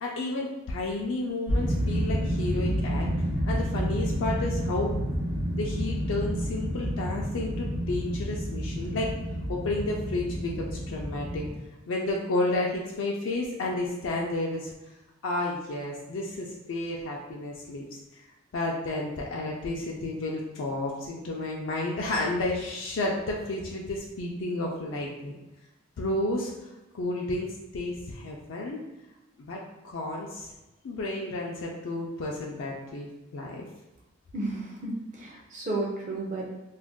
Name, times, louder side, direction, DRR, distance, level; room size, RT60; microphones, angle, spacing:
voice 1, 0.0-3.1 3.5-5.1 5.5-9.1 9.5-11.5 11.9-14.7 15.2-18.0 18.5-25.4 26.0-26.7 26.9-28.8 29.4-30.5 30.8-33.6, left 2 dB, 75° left, -2 dB, 0.4 m, -31 dB
sound 1, 1.5-11.5, equal, 75° right, 0.6 m, -29 dB
voice 2, 34.3-36.5, right 2 dB, 40° right, -2 dB, 0.5 m, -32 dB
2.5 x 2.2 x 3.5 m, 1.0 s
head